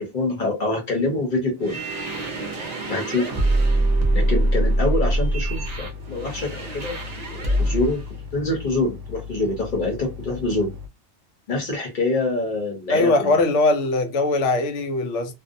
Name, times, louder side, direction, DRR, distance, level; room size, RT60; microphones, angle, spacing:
voice 1, 0.0-1.8 2.9-3.3 4.1-7.0 7.3-8.0 8.3-10.7 11.5-13.5, left 2 dB, 45° left, 0.9 m, -25 dB
sound 1, 1.6-8.0, right 1 dB, 45° right, 0.6 m, -23 dB
sound 2, 5.0-10.9, left 6 dB, 90° right, 0.9 m, -38 dB
voice 2, 12.9-15.3, left 2 dB, 80° left, 0.9 m, -20 dB
2.5 x 2.1 x 2.5 m
omnidirectional pair, 1.2 m